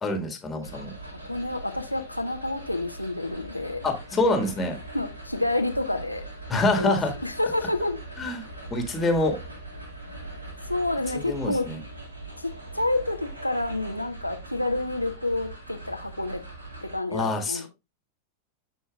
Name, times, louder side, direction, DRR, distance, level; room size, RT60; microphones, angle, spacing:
voice 1, 0.0-0.9 3.8-4.8 6.5-7.1 8.2-9.4 11.1-11.8 17.1-17.7, left 2 dB, 15° left, 4 dB, 1.7 m, -26 dB
sound 1, 0.6-17.0, right 2 dB, 75° right, 2.2 m, -41 dB
voice 2, 0.7-3.8 4.9-6.2 6.8-8.0 10.7-11.7 12.4-16.4 16.8-17.7, left 2 dB, 90° left, 5 dB, 0.7 m, -29 dB
11.5 x 4.1 x 2.3 m, 0.23 s
figure-of-eight pair, 90°, 0 cm